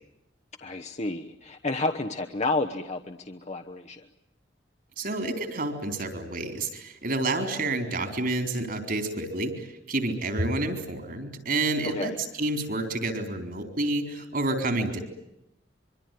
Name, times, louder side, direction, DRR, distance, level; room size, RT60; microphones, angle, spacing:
voice 1, 0.6-4.0 11.8-12.2, left 2 dB, 40° left, 5 dB, 1.1 m, -31 dB
voice 2, 5.0-15.0, right 2 dB, 50° right, 7 dB, 4.3 m, -29 dB
24.5 x 24.0 x 9.4 m, 0.86 s
head